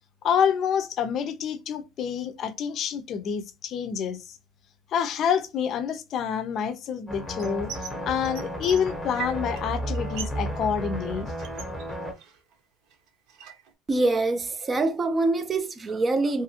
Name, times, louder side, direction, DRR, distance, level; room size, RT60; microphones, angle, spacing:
voice 1, 0.2-4.2 4.9-7.7 8.0-11.3, left 7 dB, 45° left, 0.4 m, -27 dB
sound 1, 7.1-12.1, equal, 5° left, 0.8 m, -33 dB
sound 2, 7.4-8.0 8.2-9.6 9.9-10.5 10.7-12.5 12.9-13.7, right 9 dB, 70° right, 0.8 m, -40 dB
voice 2, 13.9-16.4, right 2 dB, 25° right, 0.3 m, -25 dB
2.6 x 2.5 x 2.8 m
cardioid pair, 140°, 0 cm